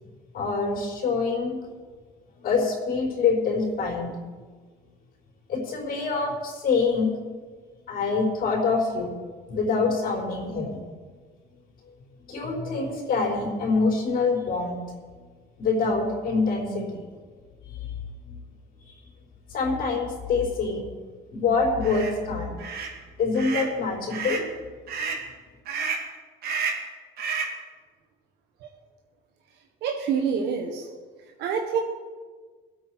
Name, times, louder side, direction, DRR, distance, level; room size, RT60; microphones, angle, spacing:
voice 1, 0.3-1.6 2.4-4.1 5.5-7.2 7.9-9.1 9.5-10.8 12.3-14.8 15.6-17.0 17.7-17.9 18.3-18.4 18.9-19.0 19.5-20.8 21.3-22.6 23.2-24.5, left 4 dB, 60° left, -1 dB, 4.6 m, -25 dB
sound 1, 21.8-22.1 22.6-22.9 23.3-23.7 24.1-24.5 24.9-25.2 25.7-26.1 26.4-26.9 27.2-27.6, right 5 dB, 65° right, 2.6 m, -30 dB
voice 2, 29.8-30.9 31.4-31.8, right 6 dB, 85° right, 2 dB, 1.4 m, -26 dB
21.5 x 8.6 x 4.8 m, 1.5 s
cardioid pair, 110°, 17 cm